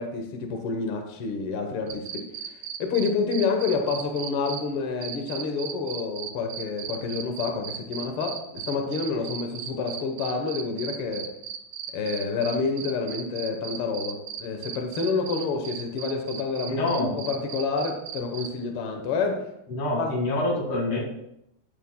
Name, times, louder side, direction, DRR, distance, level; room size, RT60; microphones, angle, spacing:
voice 1, 0.0-2.2 2.8-11.3 11.9-19.4 20.0-20.2, left 4 dB, 80° left, 4 dB, 1.2 m, -28 dB
sound 1, 1.9-4.6 5.0-18.5, right 10 dB, 75° right, 2.2 m, -36 dB
voice 2, 16.7-17.1 19.7-21.0, left 2 dB, 50° left, -1 dB, 2.6 m, -26 dB
14.0 x 9.0 x 2.2 m, 0.82 s
omnidirectional pair, 4.0 m